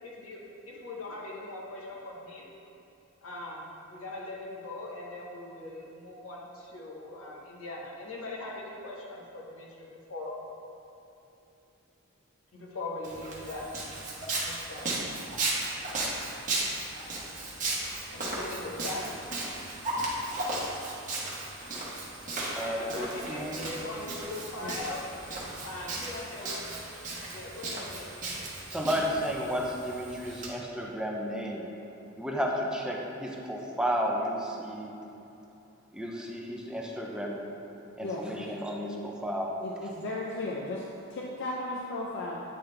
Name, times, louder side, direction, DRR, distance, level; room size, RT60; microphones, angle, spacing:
voice 1, 0.0-2.5 3.2-10.3 12.5-13.7 14.4-14.9 18.1-19.0 22.6-25.0 25.6-26.6 27.3-28.1, left 2 dB, 85° left, -3 dB, 1.1 m, -40 dB
Walk footsteps, 13.0-30.5, right 2 dB, 40° right, 1.1 m, -35 dB
voice 2, 22.6-23.7 28.7-31.7 32.2-34.9 35.9-37.5 38.0-39.5, equal, 5° right, -1 dB, 0.5 m, -32 dB
voice 3, 38.0-38.6 39.6-40.8 41.1-42.4, left 2 dB, 60° left, -3 dB, 0.5 m, -35 dB
8.5 x 3.9 x 3.2 m, 2.8 s
head